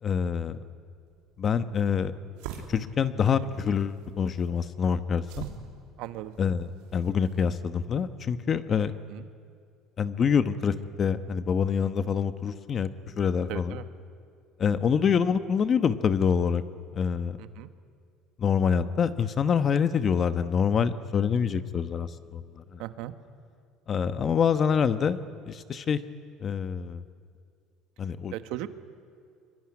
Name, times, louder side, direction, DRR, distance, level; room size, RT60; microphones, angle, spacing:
voice 1, 0.0-0.6 1.4-2.1 2.7-5.5 6.4-8.9 10.0-12.9 13.2-13.8 14.6-16.6 16.9-17.4 18.4-22.8 23.9-25.2 25.5-26.0 26.4-27.0 28.0-28.3, left 7 dB, 35° left, 11 dB, 1.1 m, -26 dB
sound 1, 1.1-7.4, right 9 dB, 85° right, 3.0 m, -46 dB
voice 2, 6.0-6.4 9.1-9.3 13.5-13.9 17.4-17.7 22.8-23.1 28.3-28.7, right 14 dB, 70° right, 10 dB, 1.4 m, -37 dB
24.5 x 24.0 x 9.8 m, 2.3 s
cardioid pair, 135°, 0 cm